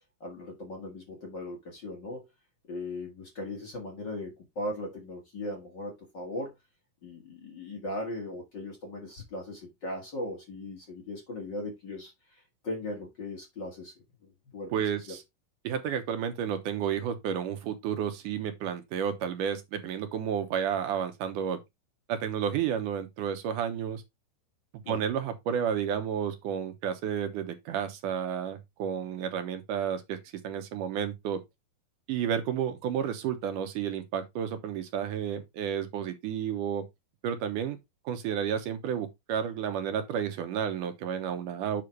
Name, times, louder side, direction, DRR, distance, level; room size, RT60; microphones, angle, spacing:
voice 1, 0.2-2.3 2.7-6.5 7.0-13.9 14.2-14.7 24.8-25.0, left 1 dB, 40° left, 2.0 m, -38 dB
voice 2, 14.7-15.2 15.6-21.6 22.1-24.0 24.9-30.2 30.4-31.4 32.1-36.9 37.2-37.8 38.1-41.8, right 8 dB, 75° right, 2.4 m, -31 dB
7.7 x 5.6 x 3.3 m
omnidirectional pair, 3.9 m